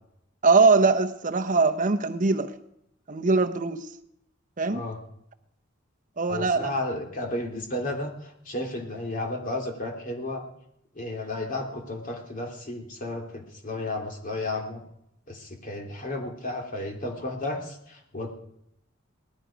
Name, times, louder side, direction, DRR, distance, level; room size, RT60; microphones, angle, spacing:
voice 1, 0.4-2.5 3.1-3.9 4.6-4.8 6.2-6.7, right 4 dB, 40° right, 8 dB, 0.8 m, -22 dB
voice 2, 6.3-10.5 10.9-14.8 15.3-18.3, left 2 dB, 40° left, 2 dB, 2.7 m, -33 dB
19.0 x 13.0 x 5.1 m, 0.79 s
head